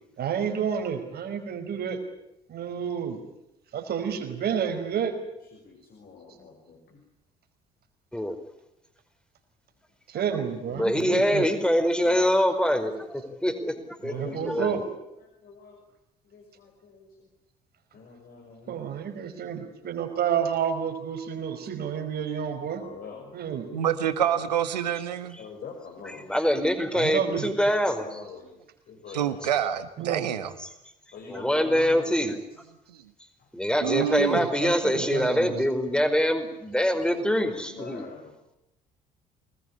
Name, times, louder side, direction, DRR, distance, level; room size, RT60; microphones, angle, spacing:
voice 1, 0.2-2.0 2.5-3.2 3.7-5.2 10.1-11.5 14.1-14.8 18.7-22.8 23.3-23.7 26.9-27.5 30.0-30.2 33.9-35.6, right 8 dB, 50° right, 6 dB, 5.2 m, -30 dB
voice 2, 5.4-7.0 10.7-10.8 12.0-12.2 12.9-13.1 14.1-14.5 15.2-15.8 16.2-17.3 17.9-19.3 22.8-23.3 24.1-24.4 25.4-26.3 27.9-28.5 28.9-29.5 30.4-30.5 31.1-32.2 33.4-33.5 36.9-38.4, left 5 dB, 45° left, 2 dB, 6.0 m, -45 dB
voice 3, 10.7-13.7 14.0-14.8 26.2-28.1 30.6-30.7 31.3-32.3 33.5-38.0, equal, 5° left, 8 dB, 4.9 m, -24 dB
voice 4, 23.7-25.4 29.1-30.5 33.8-34.4, right 9 dB, 75° right, 11 dB, 1.7 m, -27 dB
25.0 x 20.5 x 9.9 m, 0.87 s
figure-of-eight pair, 50°, 21 cm